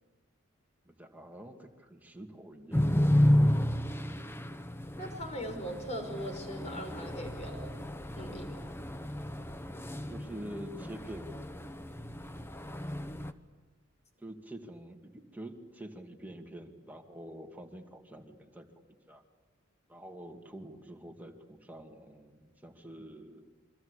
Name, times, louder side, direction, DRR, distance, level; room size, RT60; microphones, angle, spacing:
voice 1, 0.9-3.0 10.1-11.3 14.2-18.7 19.1-19.2 19.9-23.5, right 1 dB, 10° right, 3 dB, 2.3 m, -46 dB
sound 1, 2.7-13.3, left 1 dB, 10° left, 1.0 m, -31 dB
voice 2, 5.0-7.7 8.2-8.7, equal, 35° left, 5 dB, 5.7 m, -40 dB
28.0 x 25.0 x 8.3 m, 1.2 s
head